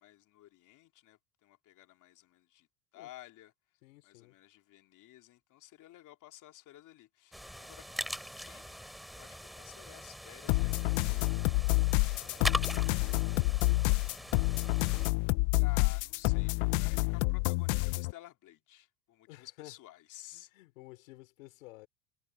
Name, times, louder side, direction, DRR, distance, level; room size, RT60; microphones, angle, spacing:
voice 1, 0.0-2.7 2.9-3.5 4.0-8.8 9.1-11.0 12.0-13.2 15.6-20.5, left 14 dB, 50° left, 3.0 m, -54 dB
voice 2, 3.8-4.3 19.3-19.7 20.3-21.9, left 21 dB, 90° left, 3.0 m, -52 dB
sound 1, 7.3-15.1, equal, ahead, 2.4 m, -41 dB
sound 2, 10.5-18.1, left 27 dB, 70° left, 0.6 m, -28 dB
supercardioid pair, 115°, 39 cm